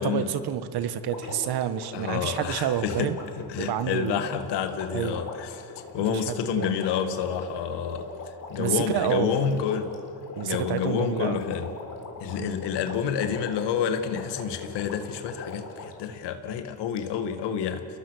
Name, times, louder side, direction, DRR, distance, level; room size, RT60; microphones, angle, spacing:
voice 1, 0.0-3.2 3.6-4.2 4.9-5.2 6.1-6.8 8.6-9.6 10.4-11.4 12.4-12.5, right 10 dB, 65° right, 1.6 m, -29 dB
Water, 1.0-16.0 17.0-17.1, left 4 dB, 50° left, 4.0 m, -41 dB
voice 2, 1.9-3.1 3.5-5.7 5.9-8.1 8.5-9.9 10.4-11.7 12.2-17.9, left 8 dB, 80° left, 2.1 m, -29 dB
29.0 x 22.0 x 6.5 m
supercardioid pair, 80°, 41 cm